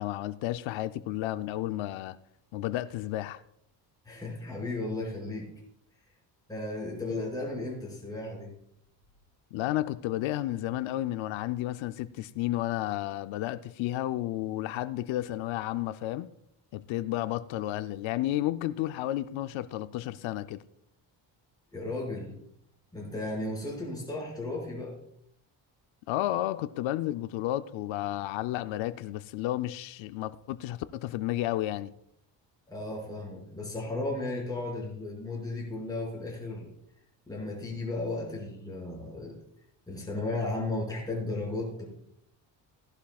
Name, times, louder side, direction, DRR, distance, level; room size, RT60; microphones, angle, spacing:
voice 1, 0.0-2.2 2.5-3.4 9.5-16.3 16.7-20.6 26.1-31.9, left 14 dB, 85° left, 0.6 m, -32 dB
voice 2, 4.0-5.5 6.5-8.5 21.7-22.3 22.9-25.0 32.7-36.7 37.3-39.4 39.9-41.9, left 2 dB, 10° left, 5.5 m, -35 dB
16.5 x 11.5 x 2.3 m
cardioid pair, 140°, 45 cm